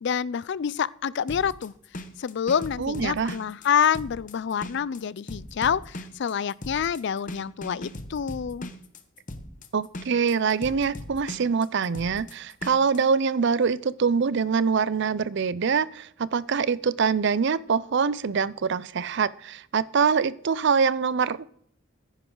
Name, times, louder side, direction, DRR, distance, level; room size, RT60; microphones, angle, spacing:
voice 1, 0.0-1.7 2.2-8.7, left 7 dB, 55° left, 0.4 m, -27 dB
sound 1, 1.3-13.0, left 1 dB, 40° left, 1.0 m, -39 dB
voice 2, 2.8-3.3 9.7-21.4, right 5 dB, 55° right, 0.5 m, -24 dB
14.5 x 10.0 x 3.8 m
head